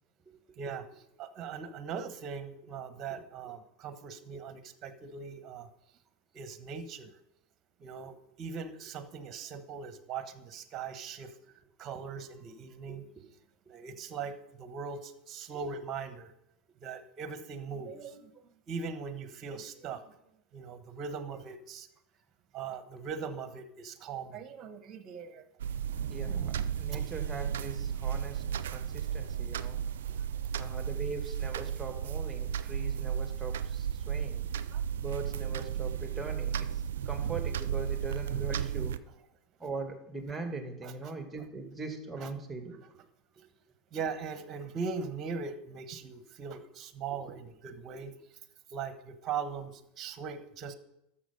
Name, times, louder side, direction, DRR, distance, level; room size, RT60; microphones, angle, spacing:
voice 1, 0.6-5.7 6.3-7.1 7.8-11.4 11.8-13.0 13.7-16.3 16.8-20.1 20.5-21.9 22.5-25.4 26.9-27.1 34.7-34.8 40.8-41.1 42.2-42.3 43.9-48.1 48.7-50.7, right 5 dB, 40° right, 10 dB, 1.2 m, -40 dB
sound 1, 25.6-39.0, right 8 dB, 75° right, 0.5 m, -34 dB
voice 2, 26.1-28.4 28.7-29.8 30.5-34.4 35.0-39.0 39.6-42.7 43.4-43.5 47.1-47.2, right 3 dB, 15° right, 5 dB, 2.3 m, -41 dB
12.5 x 7.1 x 5.3 m, 0.81 s
hypercardioid pair, 85°, 0 cm